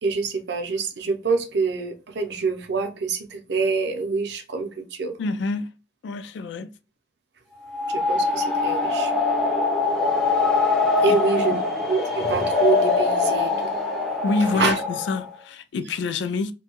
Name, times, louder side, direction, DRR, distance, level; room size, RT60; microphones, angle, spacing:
voice 1, 0.0-5.2 7.9-9.1 11.0-11.6 11.9-13.7 14.5-14.8, right 4 dB, 60° right, 0.5 m, -26 dB
voice 2, 5.2-5.7 6.0-6.7 11.1-11.2 11.5-11.6 14.2-16.5, left 3 dB, 70° left, 0.3 m, -27 dB
sound 1, 7.6-15.3, left 3 dB, 5° left, 0.4 m, -23 dB
2.6 x 2.2 x 2.9 m
head